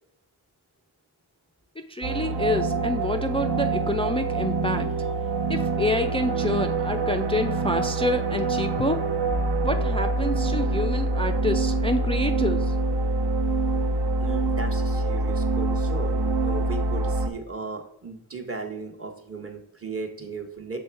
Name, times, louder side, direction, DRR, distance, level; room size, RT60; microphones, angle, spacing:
voice 1, 1.8-4.9 5.5-9.0 9.6-12.8, left 1 dB, 15° left, 7 dB, 0.3 m, -27 dB
sound 1, 2.0-17.3, right 3 dB, 55° right, 0.7 m, -25 dB
voice 2, 14.2-20.8, right 4 dB, 25° right, 2 dB, 1.1 m, -36 dB
6.2 x 3.5 x 4.5 m, 0.74 s
cardioid pair, 60°, 50 cm